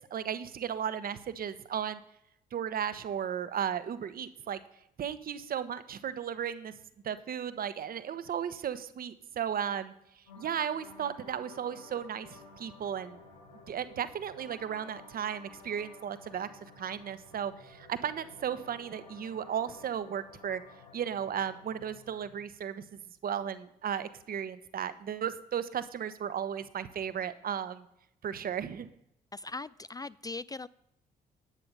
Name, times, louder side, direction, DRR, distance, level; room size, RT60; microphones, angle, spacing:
voice 1, 0.1-2.0 2.5-4.6 5.0-6.7 7.0-9.9 10.4-13.2 13.7-16.5 16.8-20.6 20.9-22.8 23.2-27.9 28.2-28.9, right 8 dB, 45° right, 14 dB, 1.0 m, -35 dB
sound 1, 10.3-22.2, left 3 dB, 75° left, 5.3 m, -53 dB
voice 2, 29.3-30.7, left 3 dB, 20° left, 18 dB, 0.4 m, -40 dB
10.5 x 9.1 x 5.6 m, 0.80 s
figure-of-eight pair, 45°, 21 cm